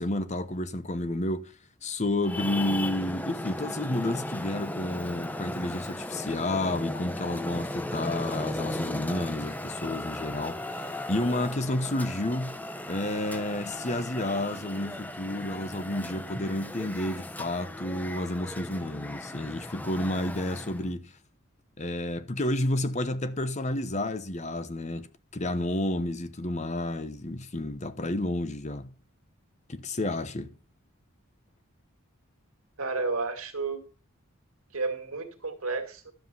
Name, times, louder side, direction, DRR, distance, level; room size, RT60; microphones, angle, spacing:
voice 1, 0.0-1.5 1.8-12.6 12.9-21.1 21.8-25.1 25.3-28.9 29.7-30.5, left 1 dB, 35° left, 0.9 m, -31 dB
Traffic noise roadway noise, 2.2-20.9, left 1 dB, 10° left, 0.6 m, -36 dB
voice 2, 32.8-33.8 34.7-36.1, right 3 dB, 85° right, 2.3 m, -31 dB
12.0 x 7.6 x 5.5 m
head